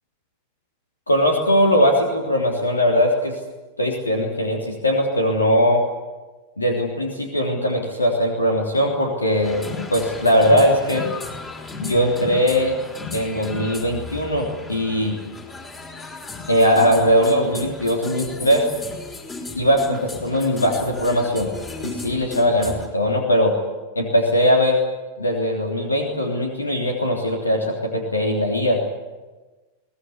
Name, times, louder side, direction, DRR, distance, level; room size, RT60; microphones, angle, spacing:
voice 1, 1.1-3.4 3.8-5.8 6.6-11.1 11.8-12.8 13.1-15.2 16.5-18.7 19.5-21.5 21.8-23.5 23.9-24.8 25.2-28.8, equal, 80° left, 1 dB, 3.2 m, -20 dB
sound 1, 9.4-22.9, left 3 dB, 20° left, 4.9 m, -35 dB
23.0 x 19.0 x 9.7 m, 1.2 s
figure-of-eight pair, 90°, 0 cm